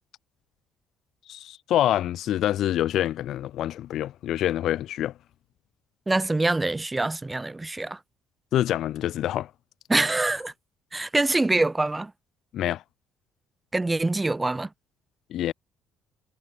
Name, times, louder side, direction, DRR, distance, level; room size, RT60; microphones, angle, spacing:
voice 1, 1.3-5.1 8.5-9.5 12.5-12.8 15.3-15.5, left 12 dB, 70° left, 1.7 m, -26 dB
voice 2, 6.1-8.0 9.9-10.5 10.9-12.1 13.7-14.7, right 2 dB, 15° right, 1.8 m, -24 dB
supercardioid pair, 80°, 0 cm